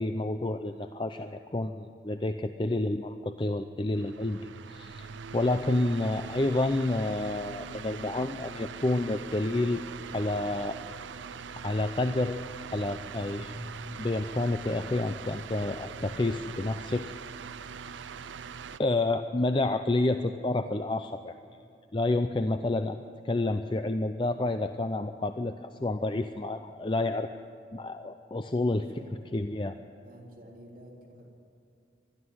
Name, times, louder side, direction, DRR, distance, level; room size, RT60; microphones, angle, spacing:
voice 1, 0.0-5.1 5.3-9.8 10.1-10.8 11.6-12.4 12.7-13.6 14.0-17.1 18.8-21.4 21.9-23.0 23.2-27.3 27.7-28.9 29.3-29.8, left 2 dB, 25° left, 9 dB, 0.5 m, -29 dB
sound 1, 3.9-18.8, right 6 dB, 85° right, 0.5 m, -42 dB
sound 2, 12.8-16.9, equal, 10° right, 2.6 m, -47 dB
voice 2, 28.6-29.2 30.0-31.3, equal, 50° right, -2 dB, 3.6 m, -50 dB
21.0 x 13.0 x 9.5 m, 2.4 s
head